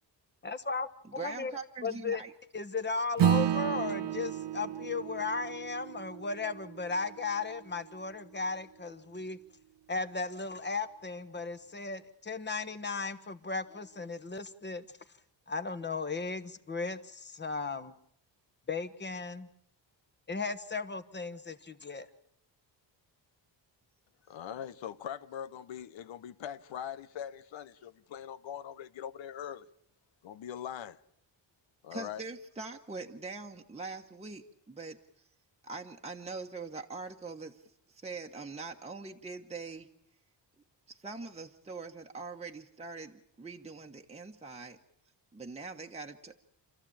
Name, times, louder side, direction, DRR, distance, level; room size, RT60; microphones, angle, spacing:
voice 1, 0.4-2.2 2.5-9.4 9.9-14.8 15.5-17.9 18.7-19.5 20.3-22.1, left 4 dB, 25° left, 1.4 m, -36 dB
voice 2, 1.0-2.3 31.9-35.0 35.6-37.6 37.9-39.9 40.9-44.8 45.3-46.4, right 4 dB, 15° right, 1.2 m, -43 dB
Acoustic guitar / Strum, 3.2-8.0, right 10 dB, 70° right, 0.8 m, -32 dB
voice 3, 24.3-29.7 30.2-31.0 31.8-32.2, left 9 dB, 85° left, 1.1 m, -42 dB
28.5 x 14.0 x 8.7 m
wide cardioid pair, 135°, 44 cm